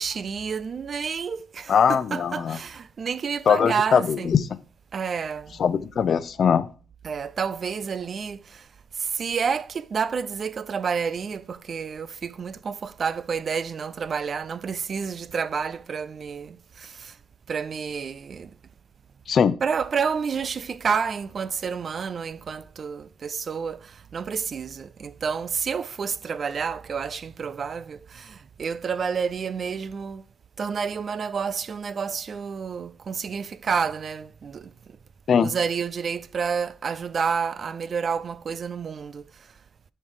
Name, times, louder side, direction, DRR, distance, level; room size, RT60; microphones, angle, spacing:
voice 1, 0.0-4.4 4.9-5.5 7.0-8.4 9.0-17.1 17.5-18.5 19.6-30.2 30.6-34.7 35.4-39.2, right 6 dB, 45° right, 0.4 m, -29 dB
voice 2, 1.7-2.6 3.5-4.4 5.6-6.7 19.3-19.5 35.3-35.5, left 7 dB, 55° left, 0.7 m, -20 dB
10.5 x 4.5 x 4.9 m
cardioid pair, 90°, 0 cm